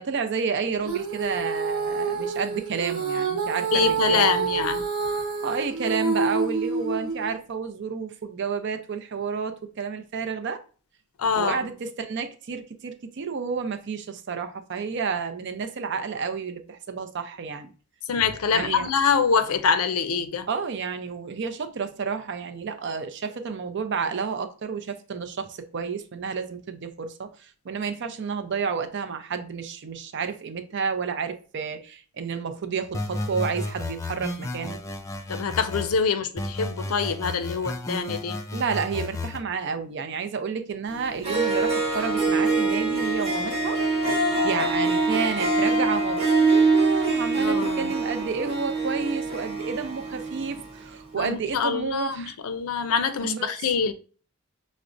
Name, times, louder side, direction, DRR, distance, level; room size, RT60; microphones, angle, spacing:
voice 1, 0.0-4.4 5.4-10.6 11.3-17.7 18.5-18.9 20.5-34.8 38.5-43.8 44.4-52.4 53.2-53.7, right 5 dB, 55° right, 0.5 m, -30 dB
Female singing, 0.8-7.3, right 5 dB, 75° right, 1.0 m, -28 dB
voice 2, 3.7-4.8 11.2-11.6 18.1-20.5 35.3-38.4 47.4-47.9 51.2-53.9, left 6 dB, 80° left, 0.5 m, -25 dB
sound 1, 32.9-36.0 36.4-39.4, left 2 dB, 15° left, 0.3 m, -33 dB
Harp, 40.9-41.0 41.2-50.8, right 3 dB, 30° right, 0.9 m, -24 dB
5.8 x 2.1 x 2.5 m
head